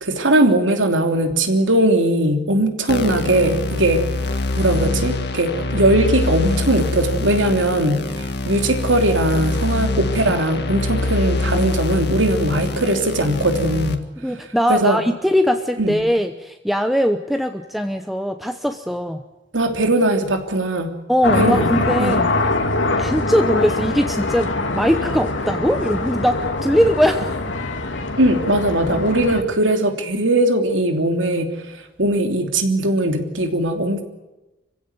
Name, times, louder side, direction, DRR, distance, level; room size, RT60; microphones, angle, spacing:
voice 1, 0.0-4.0 4.6-14.0 14.7-15.0 15.8-16.0 19.5-20.9 21.4-21.7 22.0-22.2 28.2-31.5 32.0-34.0, right 1 dB, 90° right, 5 dB, 3.0 m, -19 dB
sound 1, 2.9-13.9, left 2 dB, 60° left, 1.8 m, -24 dB
voice 2, 14.2-19.2 21.1-22.3 23.0-27.4, equal, ahead, 6 dB, 0.9 m, -20 dB
sound 2, 21.2-29.4, left 2 dB, 80° left, 2.7 m, -23 dB
26.0 x 16.0 x 9.6 m, 1.0 s
head